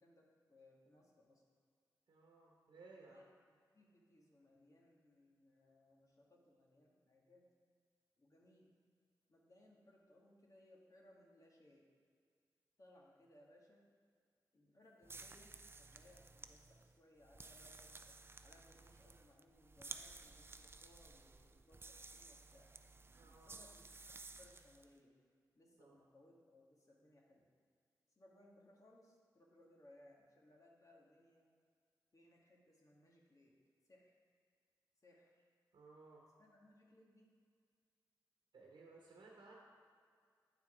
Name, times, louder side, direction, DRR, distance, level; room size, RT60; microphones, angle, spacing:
voice 1, 0.0-1.4 2.9-3.3 3.7-7.5 8.2-8.7 9.3-11.9 12.8-13.9 14.5-18.2 18.4-22.7 23.3-23.9 24.1-25.1 25.5-27.5 28.1-31.5 32.1-33.5 33.9-34.2 35.0-35.4 36.4-37.3, left 1 dB, 45° left, -2 dB, 1.7 m, -67 dB
voice 2, 2.1-3.2 23.2-23.6 25.8-25.9 35.7-36.3 38.5-39.5, right 3 dB, 75° right, -2 dB, 1.1 m, -60 dB
sound 1, 15.0-24.9, right 3 dB, 30° right, 0.4 m, -55 dB
9.1 x 4.3 x 5.0 m, 2.1 s
cardioid pair, 45°, 8 cm